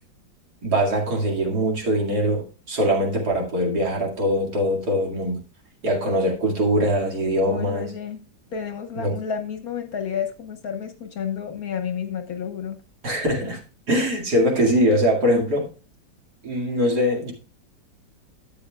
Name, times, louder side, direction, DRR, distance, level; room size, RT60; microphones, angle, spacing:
voice 1, 0.6-5.4 5.8-7.9 8.9-9.2 13.0-13.6 13.9-15.7 16.4-17.3, equal, 60° right, -1 dB, 2.8 m, -22 dB
voice 2, 7.4-12.8, left 7 dB, 60° left, 7 dB, 1.2 m, -31 dB
12.0 x 8.3 x 2.3 m, 0.33 s
omnidirectional pair, 2.0 m